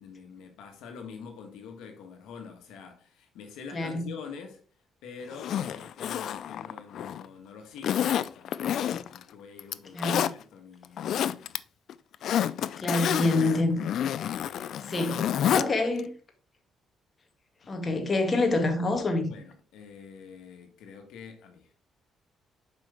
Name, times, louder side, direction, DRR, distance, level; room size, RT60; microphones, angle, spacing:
voice 1, 0.0-4.6 5.0-11.6 17.6-17.7 19.2-21.7, left 6 dB, 90° left, 1.5 m, -46 dB
voice 2, 3.7-4.1 9.9-10.3 12.8-13.8 14.9-16.1 17.7-19.3, left 2 dB, 35° left, 1.7 m, -27 dB
Zipper (clothing), 5.3-7.3 7.8-9.2 9.6-10.3 10.8-11.6 11.9-15.7 16.0-16.1, left 10 dB, 70° left, 0.4 m, -29 dB
7.4 x 5.4 x 3.4 m
cardioid pair, 90°, 0 cm